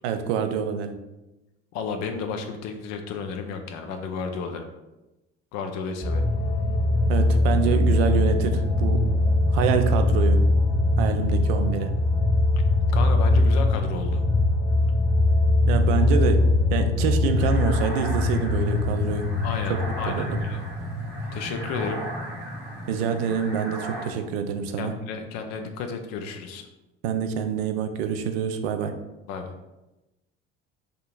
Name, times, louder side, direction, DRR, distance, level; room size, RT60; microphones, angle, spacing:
voice 1, 0.0-0.9 7.1-9.1 9.5-10.4 11.0-11.9 15.6-16.4 16.7-19.3 19.7-19.8 20.1-20.4 22.9-24.9 27.0-28.9, right 7 dB, 65° right, 7 dB, 0.5 m, -26 dB
voice 2, 1.7-4.7 5.5-6.2 12.9-14.2 19.4-20.6 21.3-22.0 24.8-26.7 29.3-29.5, left 5 dB, 55° left, 6 dB, 0.6 m, -32 dB
sound 1, 6.0-23.5 23.9-24.0, left 2 dB, 30° left, 1.1 m, -22 dB
sound 2, 17.3-24.1, right 2 dB, 80° right, 1.0 m, -38 dB
5.0 x 2.8 x 2.4 m, 0.99 s
figure-of-eight pair, 60°, 33 cm